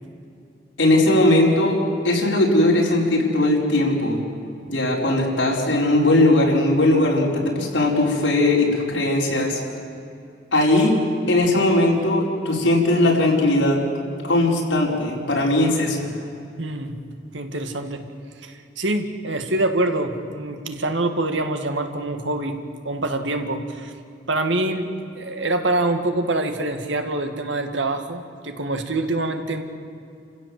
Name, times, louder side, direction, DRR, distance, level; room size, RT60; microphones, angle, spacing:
voice 1, 0.8-4.2 4.7-9.6 10.5-10.9 11.3-13.8 14.2-16.1, left 1 dB, 90° left, -2 dB, 4.8 m, -19 dB
voice 2, 16.6-17.0 17.3-18.0 18.4-22.6 22.8-23.9 24.3-29.6, right 2 dB, 80° right, 6 dB, 2.1 m, -25 dB
29.0 x 16.0 x 7.8 m, 2.6 s
head